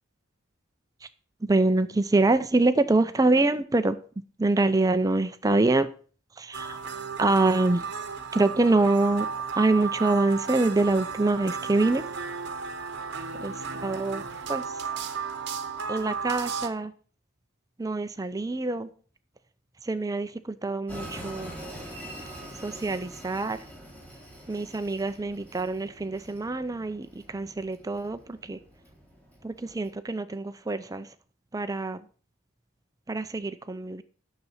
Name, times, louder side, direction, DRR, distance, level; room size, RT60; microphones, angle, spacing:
voice 1, 1.4-4.0 4.4-5.9 6.3-6.8 7.2-7.9 8.3-9.3 9.5-12.1 13.4-14.2 14.5-14.8 15.9-16.9 17.8-18.9 19.8-21.5 22.5-23.6 24.5-28.6 29.4-31.1 31.5-32.1 33.1-34.0, right 2 dB, 15° right, 0.4 m, -25 dB
sound 1, 6.5-16.7, right 5 dB, 50° right, 1.0 m, -34 dB
Train, 20.9-29.9, equal, 5° left, 3.7 m, -44 dB
9.7 x 6.8 x 5.7 m
head